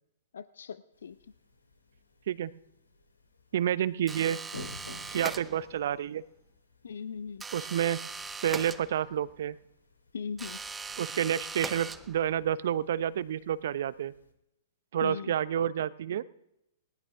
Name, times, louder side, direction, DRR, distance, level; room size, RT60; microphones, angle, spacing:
voice 1, 0.3-1.2 6.8-7.4 10.1-10.6 15.0-15.3, left 6 dB, 65° left, 15 dB, 0.6 m, -39 dB
sound 1, 0.9-14.3, left 2 dB, 80° left, 2.1 m, -53 dB
voice 2, 3.5-4.4 5.1-6.2 7.5-8.0 8.4-9.6 11.0-14.1 14.9-16.2, right 10 dB, 55° right, 17 dB, 0.8 m, -29 dB
sound 2, 4.1-5.9 7.4-9.3 10.4-12.4, right 4 dB, 10° right, 0.7 m, -40 dB
20.0 x 18.5 x 3.6 m, 0.82 s
figure-of-eight pair, 110°, 0 cm